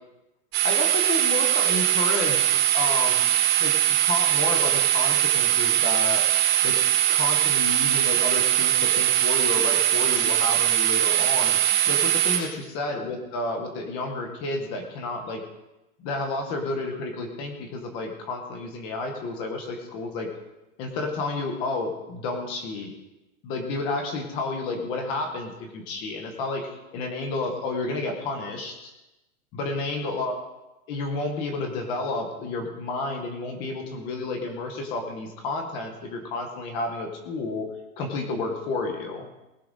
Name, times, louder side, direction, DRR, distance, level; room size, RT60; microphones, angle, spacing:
sound 1, 0.5-12.4, right 12 dB, 25° right, 3.1 m, -21 dB
voice 1, 0.6-3.3 3.6-6.2 6.6-6.8 7.1-15.4 16.0-20.3 20.8-22.9 23.4-28.9 29.5-30.3 30.9-37.7 38.0-39.3, left 3 dB, 10° left, 4 dB, 0.7 m, -31 dB
19.0 x 11.5 x 3.8 m, 0.98 s
hypercardioid pair, 175°, 43 cm